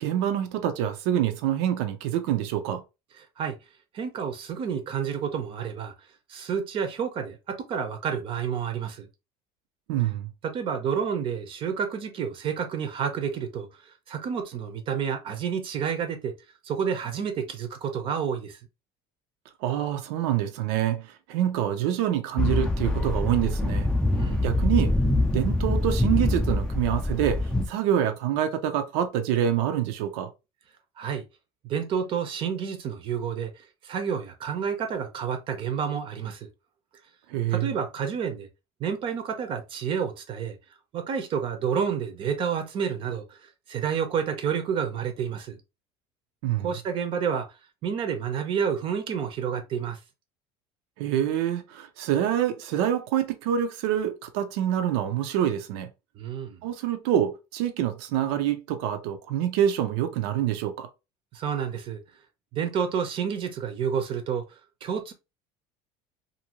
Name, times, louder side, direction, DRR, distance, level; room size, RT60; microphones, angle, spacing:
voice 1, 0.0-2.8 9.9-10.3 19.6-23.9 24.4-25.0 25.3-30.3 37.3-37.7 46.4-46.7 51.0-55.9 56.6-60.9, right 10 dB, 85° right, 0.6 m, -26 dB
voice 2, 3.9-5.9 6.3-9.1 10.4-13.7 14.1-16.3 16.6-18.6 24.1-24.5 31.0-31.2 31.6-36.5 37.5-38.5 38.8-40.6 40.9-43.4 43.7-45.6 46.6-47.5 47.8-50.0 56.2-56.6 61.3-62.0 62.5-64.4 64.8-65.1, right 7 dB, 45° right, 0.6 m, -29 dB
sound 1, 22.4-27.7, left 2 dB, 5° left, 0.4 m, -24 dB
2.7 x 2.6 x 2.9 m
cardioid pair, 140°, 13 cm